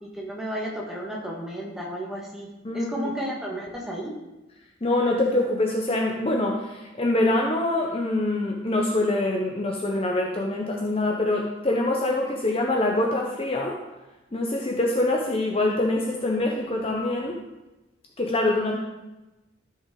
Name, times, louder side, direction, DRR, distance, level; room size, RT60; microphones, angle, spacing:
voice 1, 0.0-4.1, equal, ahead, -3 dB, 1.6 m, -33 dB
voice 2, 2.6-3.0 4.8-13.8 14.3-17.4 18.2-18.8, left 2 dB, 30° left, 0 dB, 0.8 m, -24 dB
13.0 x 5.5 x 3.8 m, 1.0 s
head